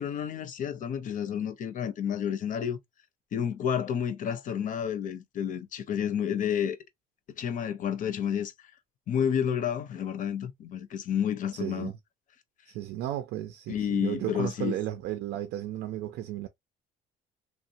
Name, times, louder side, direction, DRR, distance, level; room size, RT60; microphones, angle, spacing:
voice 1, 0.0-2.8 3.3-6.8 7.4-8.5 9.1-11.9 13.7-14.7, left 8 dB, 50° left, 0.6 m, -30 dB
voice 2, 11.5-11.9 12.7-16.5, right 13 dB, 80° right, 0.4 m, -34 dB
2.9 x 2.0 x 2.7 m
cardioid pair, 110°, 17 cm